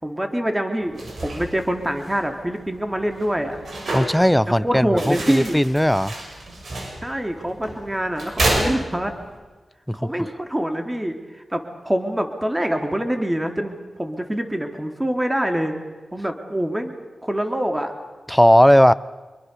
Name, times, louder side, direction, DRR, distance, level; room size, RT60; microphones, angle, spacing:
voice 1, 0.0-3.6 4.6-5.6 7.0-9.1 9.9-15.8 16.1-17.0 17.2-17.9, right 1 dB, 15° right, 5 dB, 3.4 m, -25 dB
sound 1, 0.8-9.4, right 2 dB, 70° right, 6.7 m, -30 dB
voice 2, 3.9-6.1 9.9-10.1 18.3-18.9, equal, 5° left, 16 dB, 0.8 m, -17 dB
25.5 x 23.0 x 6.9 m, 1.3 s
cardioid pair, 55°, 0 cm